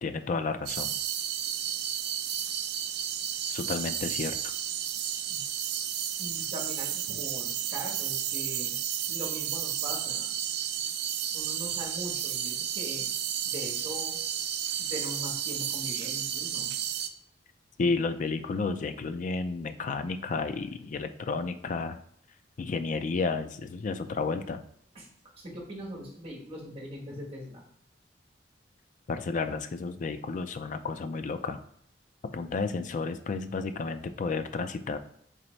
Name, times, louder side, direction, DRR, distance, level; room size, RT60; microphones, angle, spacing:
voice 1, 0.0-1.0 3.5-4.5 7.1-7.2 17.8-22.0 22.6-24.6 29.1-31.6 32.2-35.0, left 4 dB, 45° left, 10 dB, 0.3 m, -32 dB
sound 1, 0.7-17.1, right 9 dB, 60° right, 0.3 m, -32 dB
voice 2, 6.2-8.8 9.1-10.3 11.3-13.1 13.4-14.2 14.8-16.7 24.9-25.1 25.4-27.6, equal, 30° right, -2 dB, 1.2 m, -41 dB
4.0 x 3.3 x 3.1 m, 0.70 s
head